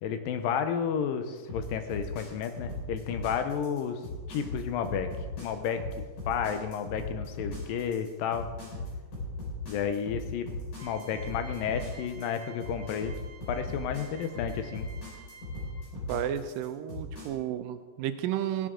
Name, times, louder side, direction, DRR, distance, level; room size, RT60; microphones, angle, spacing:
voice 1, 0.0-4.0 4.3-5.1 5.4-5.8 6.3-8.5 9.7-10.5 10.8-13.1 13.5-14.9, left 7 dB, 80° left, 8 dB, 2.5 m, -31 dB
sound 1, 1.5-17.3, left 2 dB, 60° left, 6.3 m, -38 dB
sound 2, 10.8-16.0, right 5 dB, 65° right, 1.3 m, -52 dB
voice 2, 16.1-18.7, right 10 dB, 90° right, 10 dB, 2.4 m, -32 dB
16.5 x 11.0 x 3.8 m, 1.4 s
omnidirectional pair, 4.0 m